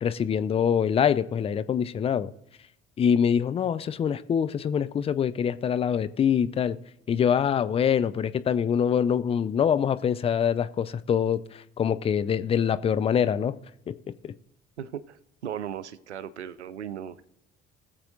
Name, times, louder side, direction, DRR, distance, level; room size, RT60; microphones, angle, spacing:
voice 1, 0.0-2.3 3.0-6.8 7.1-13.6 13.9-14.0, left 8 dB, 20° left, 0.4 m, -24 dB
voice 2, 14.8-17.3, right 9 dB, 80° right, 0.5 m, -37 dB
20.5 x 7.3 x 2.6 m
figure-of-eight pair, 55°, 33 cm